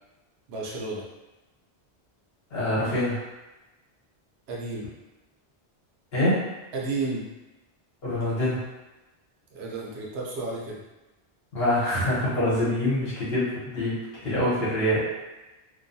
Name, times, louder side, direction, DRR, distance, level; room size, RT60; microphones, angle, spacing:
voice 1, 0.5-1.0 4.5-4.9 6.7-7.3 9.5-10.8, right 3 dB, 75° right, -3 dB, 0.9 m, -32 dB
voice 2, 2.5-3.2 6.1-6.5 8.0-8.6 11.5-15.0, left 1 dB, 70° left, -8 dB, 1.2 m, -25 dB
2.6 x 2.2 x 2.6 m, 1.1 s
omnidirectional pair, 1.1 m